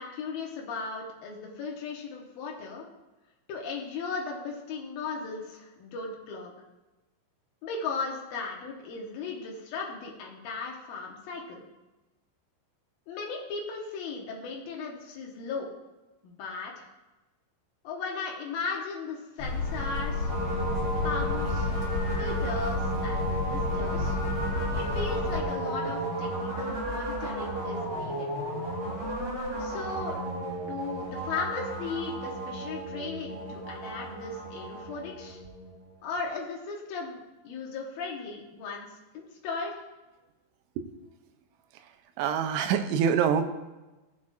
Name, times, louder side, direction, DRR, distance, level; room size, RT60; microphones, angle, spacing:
voice 1, 0.0-2.9 3.5-6.5 7.6-11.6 13.1-15.7 16.2-16.9 17.8-20.3 21.0-21.7 22.2-24.2 24.7-28.3 29.6-30.2 30.6-35.4 36.0-38.9 39.1-39.8, left 4 dB, 75° left, -1 dB, 2.1 m, -36 dB
sound 1, 19.4-25.4, left 3 dB, 50° left, 2.4 m, -31 dB
sound 2, 19.6-35.8, right 1 dB, 50° right, 5.1 m, -34 dB
voice 2, 42.2-43.6, right 7 dB, 85° right, 7 dB, 2.9 m, -25 dB
16.5 x 7.4 x 2.5 m, 1.1 s
omnidirectional pair, 5.7 m